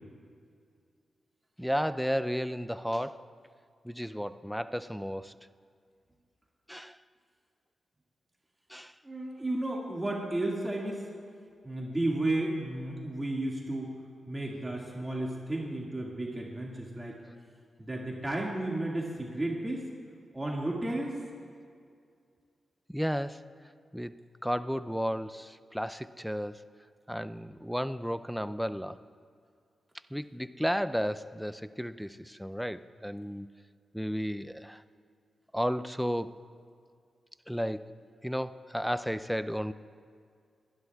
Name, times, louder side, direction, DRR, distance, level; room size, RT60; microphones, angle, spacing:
voice 1, 1.6-3.2 3.8-5.4 6.7-7.0 8.7-8.9 22.9-23.4 23.9-24.1 24.4-26.6 27.1-29.0 30.1-33.5 33.9-34.8 35.5-36.3 37.5-37.9 38.2-39.7, equal, ahead, 13 dB, 0.5 m, -33 dB
voice 2, 9.0-11.0 11.6-13.9 14.3-17.1 17.8-19.9 20.3-21.1, right 1 dB, 20° right, -3 dB, 2.0 m, -33 dB
27.5 x 11.0 x 2.4 m, 2.3 s
supercardioid pair, 40°, 0 cm